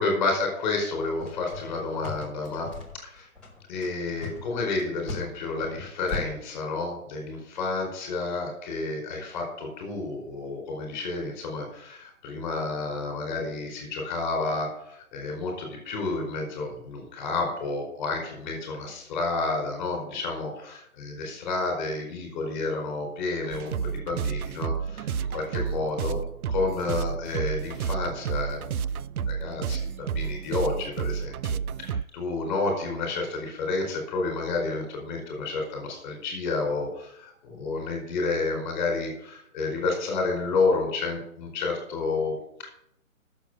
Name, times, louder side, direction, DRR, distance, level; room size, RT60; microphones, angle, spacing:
voice 1, 0.0-2.7 3.0-3.3 3.7-26.2 26.5-28.6 29.3-42.7, left 3 dB, 20° left, 0 dB, 4.5 m, -30 dB
sound 1, 1.2-6.2, left 3 dB, 5° left, 1.1 m, -38 dB
sound 2, 23.5-32.0, right 7 dB, 85° right, 0.6 m, -31 dB
10.0 x 7.2 x 7.9 m, 0.74 s
hypercardioid pair, 165°, 43 cm